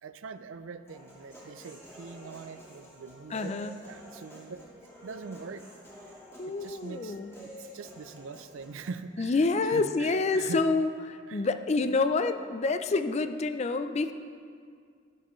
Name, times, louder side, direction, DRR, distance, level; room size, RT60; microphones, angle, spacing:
voice 1, 0.0-3.6 3.9-4.6 5.0-5.7 6.5-10.6 11.3-11.5 13.0-13.1, right 4 dB, 75° right, 11 dB, 0.5 m, -43 dB
Human voice, 0.9-8.9, equal, 15° left, 1.7 m, -50 dB
voice 2, 3.3-3.7 6.4-7.3 9.2-14.1, left 3 dB, 35° left, 9 dB, 0.4 m, -28 dB
12.5 x 10.0 x 3.1 m, 2.2 s
head